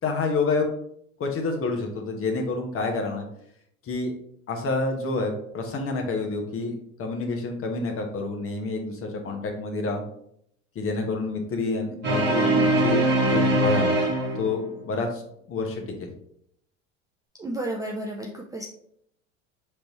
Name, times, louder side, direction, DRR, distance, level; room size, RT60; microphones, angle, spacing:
voice 1, 0.0-0.7 1.2-3.3 3.8-4.1 4.5-10.0 10.7-14.0 14.4-15.2 15.5-16.1, left 3 dB, 35° left, 2 dB, 1.1 m, -28 dB
sound 1, 12.0-14.7, right 2 dB, 25° right, 1.2 m, -22 dB
voice 2, 17.4-18.6, right 1 dB, 10° right, -1 dB, 0.4 m, -32 dB
5.0 x 3.3 x 3.0 m, 0.72 s
hypercardioid pair, 85°, 39 cm